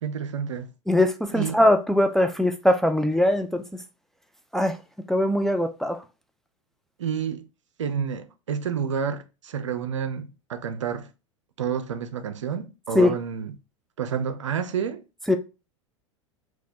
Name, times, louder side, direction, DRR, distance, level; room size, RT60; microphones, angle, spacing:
voice 1, 0.0-0.7 1.3-1.5 7.0-7.5 7.8-11.1 11.6-13.5 14.0-15.0, right 7 dB, 70° right, 0.5 m, -29 dB
voice 2, 0.9-3.8 4.5-4.8 5.1-6.0 12.9-13.1 15.3-15.4, left 1 dB, ahead, 0.3 m, -21 dB
4.0 x 2.3 x 2.7 m
figure-of-eight pair, 85°, 16 cm